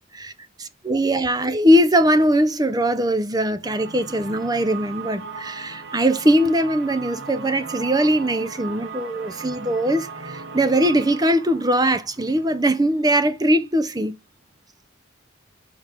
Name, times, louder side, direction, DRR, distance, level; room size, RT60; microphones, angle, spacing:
voice 1, 0.6-14.1, right 1 dB, 20° right, 0.7 m, -20 dB
sound 1, 3.6-13.3, right 4 dB, 55° right, 1.0 m, -38 dB
5.1 x 5.1 x 5.9 m
head